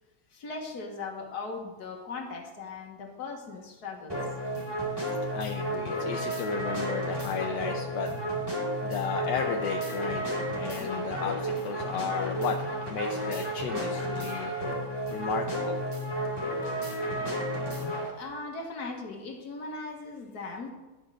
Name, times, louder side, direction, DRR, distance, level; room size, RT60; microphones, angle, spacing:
voice 1, 0.3-4.2 18.1-20.7, left 3 dB, 65° left, 2 dB, 1.9 m, -39 dB
sound 1, 4.1-18.1, right 1 dB, 15° right, 2.2 m, -32 dB
voice 2, 5.3-8.1 8.8-10.3 10.6-14.5 15.1-15.8, left 7 dB, 80° left, 3 dB, 1.4 m, -34 dB
11.0 x 5.5 x 6.3 m, 1.1 s
omnidirectional pair, 1.8 m